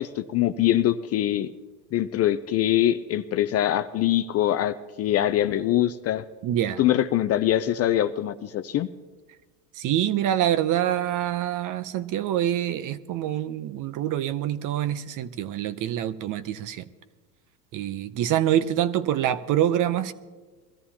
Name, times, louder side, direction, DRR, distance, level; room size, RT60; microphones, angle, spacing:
voice 1, 0.0-1.5 1.9-6.2 6.8-8.9, left 12 dB, 30° left, 10 dB, 0.4 m, -23 dB
voice 2, 6.4-6.8 9.8-16.9 17.7-20.1, right 11 dB, 40° right, 14 dB, 0.7 m, -26 dB
22.0 x 14.0 x 2.9 m, 1.4 s
hypercardioid pair, 95°, 50 cm